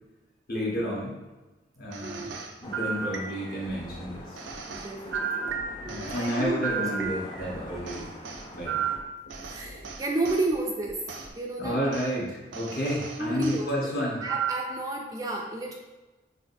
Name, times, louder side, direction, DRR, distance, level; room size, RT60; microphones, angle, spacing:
voice 1, 0.5-1.1 1.8-2.3 2.6-4.4 5.9-8.1 8.5-8.9 11.6-14.2, equal, 50° left, -5 dB, 1.2 m, -31 dB
sound 1, 1.9-3.7 4.4-7.5 7.9-10.5 11.1-11.3 11.9-12.1 12.5-13.6 14.2-14.8, right 6 dB, 90° right, 0.5 m, -34 dB
voice 2, 2.0-2.4 4.7-5.5 5.8-7.1 7.7-8.1 9.4-11.0 11.4-11.8 13.2-13.9 14.2-15.7, right 2 dB, 20° right, 0 dB, 0.3 m, -32 dB
sound 2, 2.6-9.0, left 1 dB, 25° left, 0.6 m, -45 dB
sound 3, 3.6-11.3, equal, 85° left, 0.7 m, -47 dB
6.1 x 2.5 x 2.6 m, 1.1 s
head